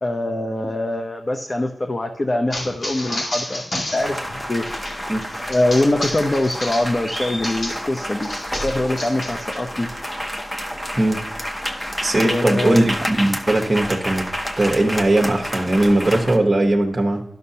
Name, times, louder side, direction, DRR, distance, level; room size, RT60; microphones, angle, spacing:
voice 1, 0.0-4.7 4.9-5.2 5.5-8.3 8.6-9.9 12.2-12.8, left 1 dB, 40° left, 5 dB, 0.7 m, -23 dB
sound 1, 2.5-7.9 8.2-9.6, left 1 dB, 70° left, 2.3 m, -31 dB
flamenco dancer's heel rhythms, 4.0-16.4, equal, 15° left, 1.0 m, -29 dB
voice 2, 12.0-14.3 14.6-17.2, right 1 dB, 30° right, 1 dB, 1.1 m, -19 dB
11.0 x 6.5 x 2.8 m, 0.84 s
cardioid pair, 60°, 0 cm